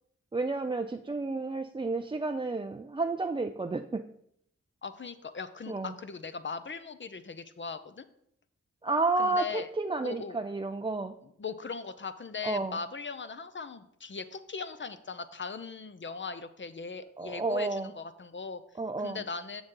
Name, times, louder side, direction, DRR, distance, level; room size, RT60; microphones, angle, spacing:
voice 1, 0.3-4.0 5.7-5.9 8.8-11.1 12.4-12.8 17.2-17.9 18.8-19.2, right 3 dB, 20° right, 6 dB, 0.4 m, -31 dB
voice 2, 4.8-8.1 9.2-9.7 10.0-10.4 11.2-18.6 19.0-19.6, left 5 dB, 40° left, 11 dB, 0.7 m, -39 dB
7.1 x 6.5 x 3.8 m, 0.73 s
cardioid pair, 40°, 29 cm